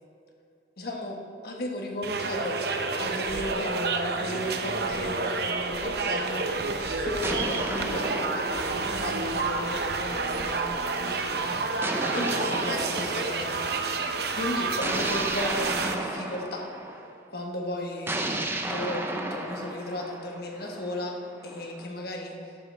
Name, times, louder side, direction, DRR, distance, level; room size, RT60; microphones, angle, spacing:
voice 1, 0.8-2.6 3.0-13.6 14.3-16.7 17.3-22.6, left 1 dB, 55° left, 0 dB, 1.4 m, -35 dB
sound 1, 2.0-16.0, right 3 dB, 60° right, 0.8 m, -29 dB
sound 2, 5.4-6.4 7.2-9.8 11.8-13.9 14.8-17.1 18.1-21.9, right 1 dB, 15° right, 0.6 m, -34 dB
13.0 x 11.5 x 3.5 m, 2.5 s
head